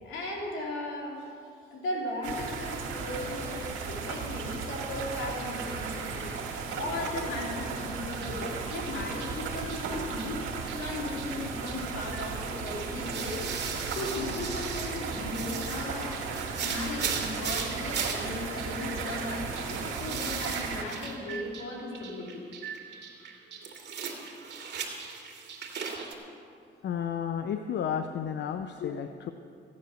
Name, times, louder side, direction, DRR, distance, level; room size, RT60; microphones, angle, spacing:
voice 1, 0.0-1.3 1.7-6.3 6.8-10.4 10.7-13.5 13.9-16.1 16.6-22.4, left 2 dB, 80° left, -2 dB, 3.2 m, -36 dB
sound 1, 2.2-20.8, right 5 dB, 90° right, 2.1 m, -35 dB
sound 2, 8.1-26.1, right 6 dB, 60° right, 2.3 m, -39 dB
voice 2, 26.8-29.3, left 8 dB, 65° left, 8 dB, 0.6 m, -32 dB
15.0 x 9.7 x 6.5 m, 2.5 s
cardioid pair, 90°, 20 cm